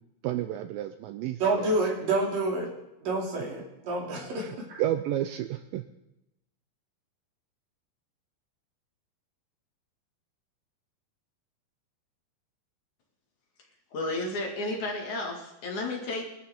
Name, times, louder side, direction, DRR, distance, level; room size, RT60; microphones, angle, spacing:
voice 1, 0.2-1.7 4.4-5.9, right 12 dB, 80° right, 8 dB, 2.2 m, -31 dB
voice 2, 1.4-2.7 3.0-4.8, right 2 dB, 65° right, -1 dB, 4.4 m, -28 dB
voice 3, 13.9-16.2, left 2 dB, 55° left, 0 dB, 3.5 m, -32 dB
24.0 x 12.5 x 3.7 m, 0.89 s
omnidirectional pair, 4.4 m